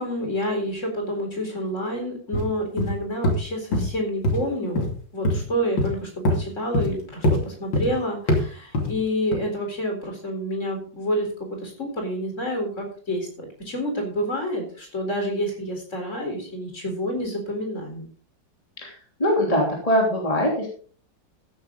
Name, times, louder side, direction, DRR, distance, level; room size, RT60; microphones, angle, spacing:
voice 1, 0.0-4.8 5.1-18.1, equal, 40° left, 2 dB, 4.3 m, -28 dB
sound 1, 2.3-2.5 2.8-2.9 3.2-3.4 3.7-3.9 4.2-4.4 4.8-4.9 5.3-5.4 5.8-5.9 6.3-6.4 6.7-6.9 7.2-7.4 7.7-7.9 8.3-8.4 8.7-8.9 9.3-9.4, left 1 dB, 80° left, 3.3 m, -22 dB
voice 2, 18.8-20.7, equal, 20° left, -1 dB, 3.2 m, -22 dB
15.0 x 9.8 x 3.8 m, 0.43 s
omnidirectional pair, 2.0 m